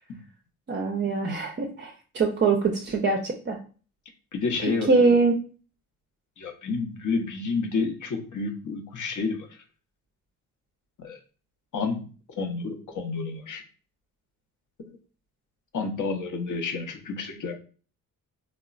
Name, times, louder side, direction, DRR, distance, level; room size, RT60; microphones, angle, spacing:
voice 1, 0.7-3.6 4.6-5.3, right 4 dB, 25° right, 1 dB, 0.5 m, -23 dB
voice 2, 4.3-5.2 6.4-9.5 11.0-11.2 11.7-12.1 12.4-13.6 15.7-17.5, left 4 dB, 45° left, 5 dB, 0.8 m, -30 dB
3.6 x 2.1 x 2.4 m, 0.38 s
hypercardioid pair, 50°, 45 cm